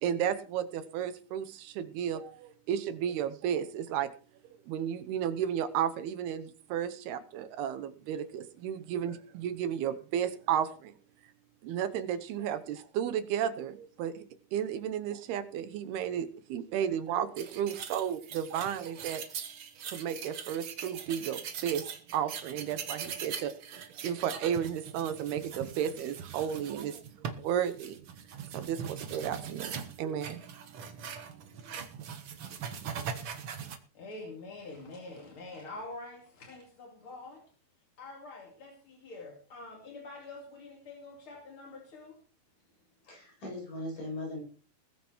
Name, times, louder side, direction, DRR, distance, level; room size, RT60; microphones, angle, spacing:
voice 1, 0.0-4.1 4.7-10.9 11.6-14.2 14.5-19.2 19.9-27.0 27.4-28.0 28.5-29.7 30.0-30.4, right 9 dB, 75° right, 11 dB, 3.0 m, -33 dB
sound 1, 17.4-33.8, right 7 dB, 60° right, 1.4 m, -41 dB
voice 2, 33.9-37.5 38.0-42.2, left 2 dB, 35° left, 1 dB, 2.8 m, -46 dB
voice 3, 43.0-44.4, left 1 dB, 50° left, 0 dB, 9.3 m, -39 dB
20.5 x 9.1 x 4.5 m, 0.40 s
omnidirectional pair, 4.6 m